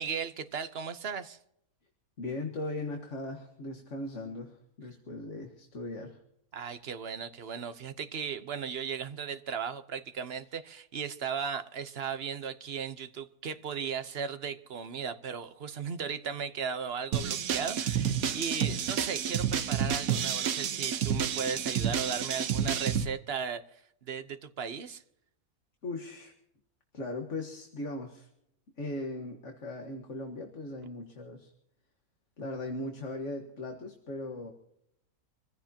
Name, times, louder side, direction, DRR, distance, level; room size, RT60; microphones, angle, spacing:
voice 1, 0.0-1.4 6.5-25.0, right 6 dB, 45° right, 10 dB, 1.1 m, -36 dB
voice 2, 2.2-6.2 25.8-26.3 26.9-28.3 28.8-31.5 32.4-34.5, left 2 dB, 55° left, 2 dB, 1.9 m, -38 dB
sound 1, 17.1-23.1, right 8 dB, 70° right, 1.4 m, -30 dB
25.5 x 15.5 x 2.9 m, 0.75 s
omnidirectional pair, 1.5 m